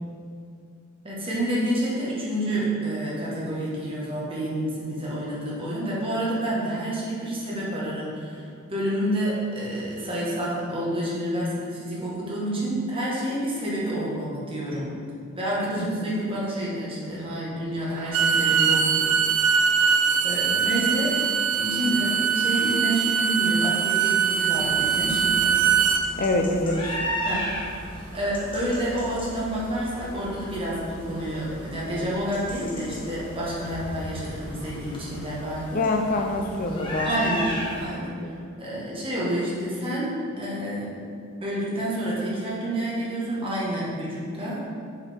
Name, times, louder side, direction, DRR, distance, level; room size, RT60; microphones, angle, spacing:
voice 1, 1.0-14.9 15.3-19.7 20.2-21.2 21.6-25.6 27.2-27.9 28.1-35.8 37.0-40.9 41.4-44.6, right 1 dB, 25° right, -6 dB, 1.4 m, -29 dB
Bowed string instrument, 18.0-26.0, right 7 dB, 85° right, 0.4 m, -22 dB
sound 1, 24.5-37.8, equal, 25° left, 1.0 m, -35 dB
voice 2, 26.2-27.1 35.7-37.3 37.9-38.3, left 2 dB, 40° left, 3 dB, 0.5 m, -26 dB
7.0 x 4.9 x 3.5 m, 2.3 s
head